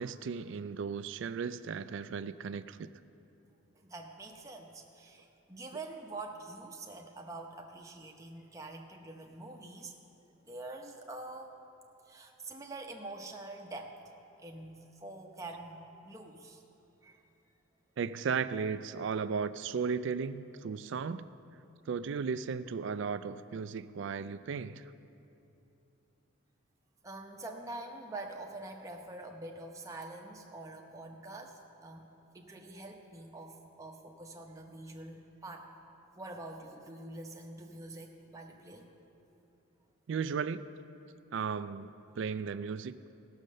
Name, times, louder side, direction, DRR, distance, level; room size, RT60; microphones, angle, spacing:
voice 1, 0.0-2.9 18.0-21.3 21.9-24.9 40.1-40.7 41.3-43.0, right 6 dB, 60° right, 15 dB, 0.3 m, -35 dB
voice 2, 3.9-9.9 10.4-11.5 12.1-14.1 14.4-16.6 17.0-17.2 27.0-32.1 32.3-35.7 36.1-39.0, right 2 dB, 15° right, 1 dB, 0.8 m, -45 dB
15.5 x 6.5 x 6.3 m, 2.9 s
head